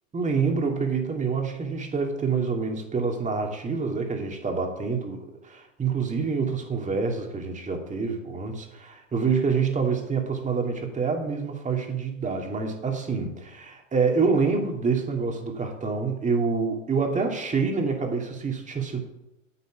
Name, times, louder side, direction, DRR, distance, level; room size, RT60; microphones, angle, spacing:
voice 1, 0.1-19.0, right 5 dB, 20° right, 3 dB, 2.3 m, -27 dB
8.8 x 8.1 x 5.9 m, 0.88 s
hypercardioid pair, 95°, 40 cm